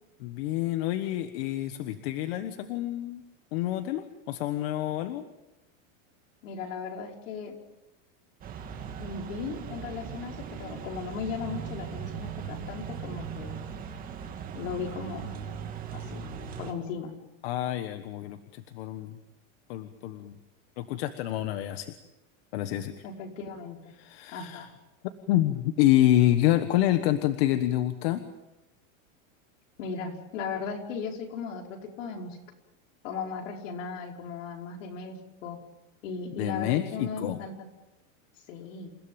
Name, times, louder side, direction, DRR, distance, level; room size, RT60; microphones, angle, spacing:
voice 1, 0.2-3.2 3.5-5.2 17.4-19.2 19.7-20.3 20.8-21.9 22.5-22.9 24.0-24.7 25.3-28.2 36.4-37.4, left 13 dB, 50° left, 9 dB, 1.4 m, -27 dB
voice 2, 6.4-7.5 9.0-13.6 14.5-15.3 15.9-16.2 16.6-17.1 23.0-23.8 24.3-24.7 29.8-32.4 33.0-35.2 35.4-35.6 36.0-37.7 38.5-38.9, left 5 dB, 65° left, 2 dB, 5.2 m, -37 dB
sound 1, 8.4-16.7, right 7 dB, 20° right, 2.6 m, -39 dB
29.0 x 16.5 x 9.0 m, 0.99 s
supercardioid pair, 175°, 40 cm